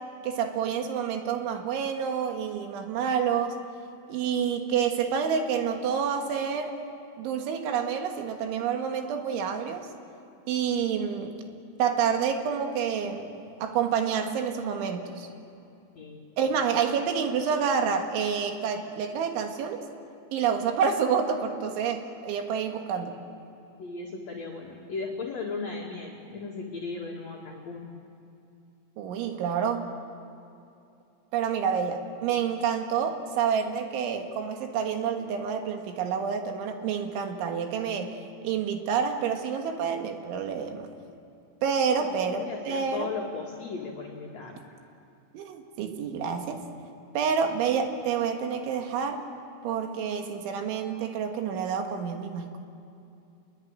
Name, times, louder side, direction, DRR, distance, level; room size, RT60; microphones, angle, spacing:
voice 1, 0.2-3.6 4.1-6.7 7.2-9.9 10.5-11.4 11.8-13.3 13.6-15.3 16.4-19.8 20.3-23.1 29.0-29.9 31.3-38.2 38.4-40.9 41.6-43.1 45.3-46.6 47.2-49.2 49.6-52.6, right 7 dB, 85° right, 4 dB, 4.2 m, -28 dB
voice 2, 23.8-27.9 41.9-44.6, left 4 dB, 45° left, -2 dB, 2.6 m, -36 dB
28.0 x 22.0 x 9.0 m, 2.6 s
omnidirectional pair, 5.3 m